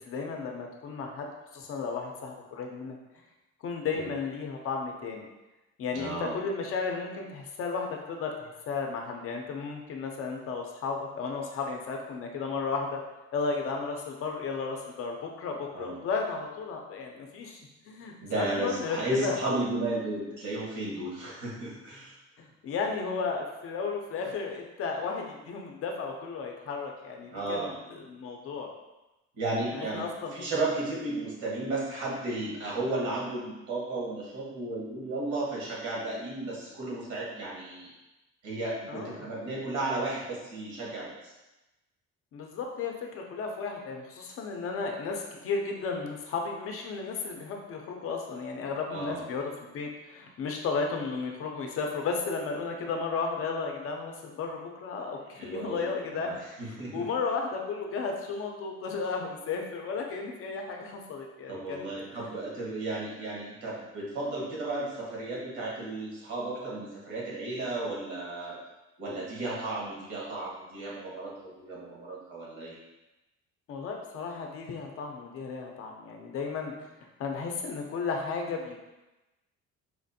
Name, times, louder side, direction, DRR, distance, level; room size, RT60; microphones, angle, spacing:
voice 1, 0.1-3.0 3.6-5.2 5.8-13.0 13.3-17.6 17.8-19.4 22.4-28.7 29.7-30.3 38.9-39.2 42.3-56.3 56.6-61.9 62.1-62.3 73.7-76.9 77.2-78.8, left 4 dB, 50° left, 1 dB, 0.5 m, -34 dB
voice 2, 5.9-6.4 15.7-16.0 18.2-22.1 27.3-27.8 29.4-37.9 38.4-41.3 48.9-49.2 55.4-57.1 61.5-68.6 69.0-72.8, right 2 dB, 75° right, -5 dB, 1.4 m, -34 dB
4.3 x 2.4 x 2.6 m, 1.0 s
cardioid pair, 165°, 29 cm